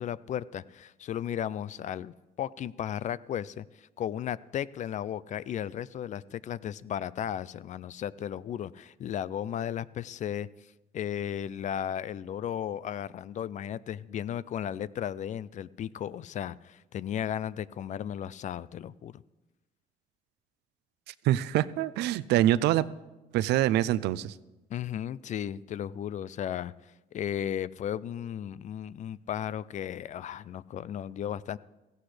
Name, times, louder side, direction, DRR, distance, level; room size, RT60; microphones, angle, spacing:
voice 1, 0.0-19.2 24.7-31.6, left 10 dB, 45° left, 19 dB, 0.4 m, -35 dB
voice 2, 21.2-22.9 23.3-24.3, right 13 dB, 80° right, 16 dB, 0.5 m, -25 dB
16.5 x 15.5 x 3.3 m, 1.1 s
cardioid pair, 110°, 17 cm